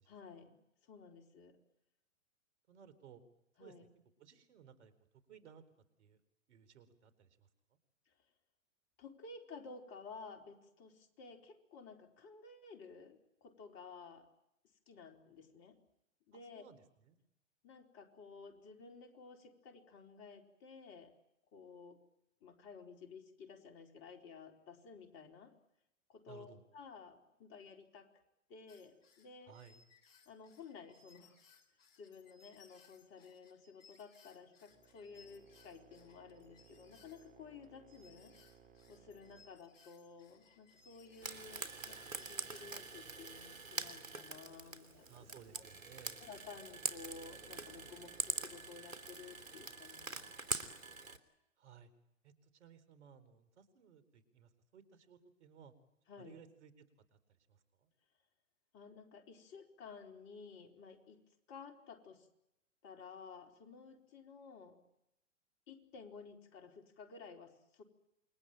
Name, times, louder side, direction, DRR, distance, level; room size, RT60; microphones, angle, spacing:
voice 1, 0.1-1.6 3.6-3.9 8.1-8.2 9.0-14.3 14.9-15.8 16.3-16.6 17.6-21.1 21.5-22.0 22.4-25.5 26.1-28.1 28.5-29.6 30.3-31.4 32.0-38.3 38.9-45.3 45.5-45.7 46.2-50.7 56.1-56.4 58.7-61.2 61.5-62.3 62.8-64.8 65.7-67.8, left 5 dB, 30° left, 5 dB, 4.0 m, -54 dB
voice 2, 2.7-3.2 3.6-3.8 4.2-4.9 5.3-5.6 6.0-6.2 6.5-7.5 16.3-17.2 26.3-26.7 29.5-29.8 45.1-46.3 51.6-51.9 52.2-55.7 56.2-57.2 57.5-57.9, right 8 dB, 60° right, 13 dB, 4.3 m, -59 dB
sound 1, 28.7-43.4, left 5 dB, 50° left, 6.7 m, -66 dB
sound 2, 34.7-49.9, right 7 dB, 20° right, 5.6 m, -65 dB
Frying (food), 41.2-51.2, right 4 dB, 85° right, 3.2 m, -44 dB
28.5 x 22.5 x 9.1 m, 0.84 s
hypercardioid pair, 120°, 38 cm